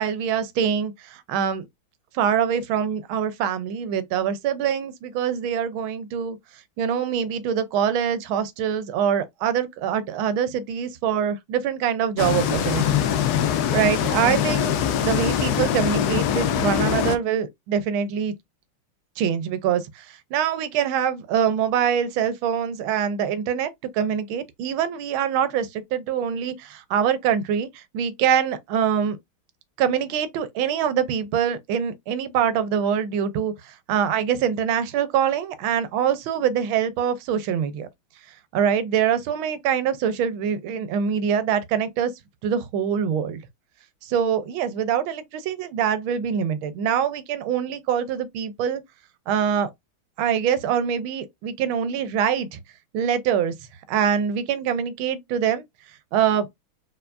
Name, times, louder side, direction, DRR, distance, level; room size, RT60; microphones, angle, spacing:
voice 1, 0.0-1.7 2.1-6.4 6.8-13.0 13.5-14.7 15.0-18.3 19.2-29.2 29.8-37.9 38.5-42.1 42.4-43.4 44.0-48.8 49.3-49.7 50.2-52.6 52.9-53.5 53.9-55.6 56.1-56.5, right 8 dB, 80° right, 1.4 m, -24 dB
sound 1, 12.2-17.2, left 9 dB, 75° left, 0.9 m, -23 dB
4.5 x 4.0 x 2.5 m
omnidirectional pair, 2.3 m